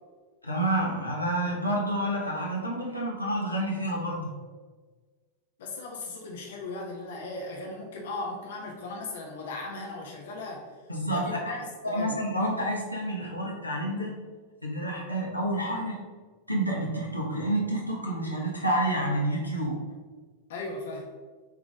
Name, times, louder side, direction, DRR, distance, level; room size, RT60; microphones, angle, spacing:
voice 1, 0.4-4.3 10.9-11.4 11.8-14.1 14.6-16.0 16.5-19.8, right 1 dB, 90° left, -3 dB, 1.2 m, -29 dB
voice 2, 5.6-10.7 11.1-12.2 20.5-21.1, left 2 dB, 60° left, 0 dB, 1.2 m, -37 dB
8.0 x 3.7 x 3.6 m, 1.4 s
figure-of-eight pair, 90°, 0 cm